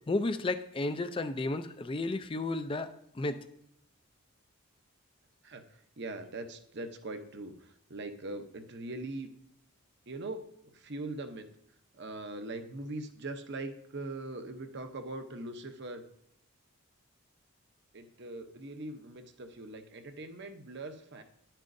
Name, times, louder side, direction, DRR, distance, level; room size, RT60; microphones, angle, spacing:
voice 1, 0.1-3.4, left 2 dB, 25° left, 11 dB, 0.4 m, -33 dB
voice 2, 5.4-9.3 10.1-11.4 11.9-16.0 17.9-21.2, right 2 dB, 50° right, 7 dB, 0.8 m, -41 dB
10.5 x 8.8 x 2.6 m, 0.76 s
head